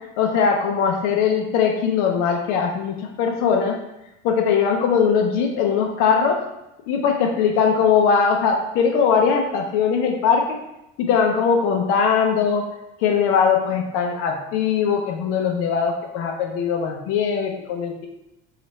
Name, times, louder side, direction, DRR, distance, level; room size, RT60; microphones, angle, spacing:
voice 1, 0.2-3.8 4.2-6.4 6.9-10.6 11.0-12.7 13.0-18.1, left 6 dB, 80° left, 2 dB, 0.6 m, -20 dB
3.0 x 2.5 x 4.1 m, 0.92 s
cardioid pair, 115°, 21 cm